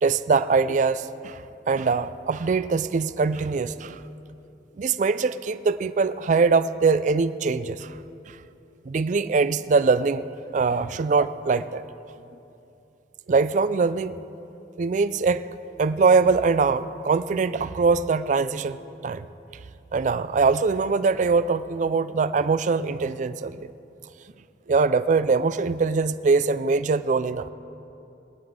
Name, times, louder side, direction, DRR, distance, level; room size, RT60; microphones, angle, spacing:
voice 1, 0.0-4.0 4.8-8.0 8.3-8.4 8.9-11.8 13.3-14.2 14.8-15.5 15.8-19.3 19.9-23.7 24.7-27.5, right 4 dB, 45° right, 14 dB, 0.3 m, -22 dB
21.5 x 9.8 x 3.7 m, 2.8 s
head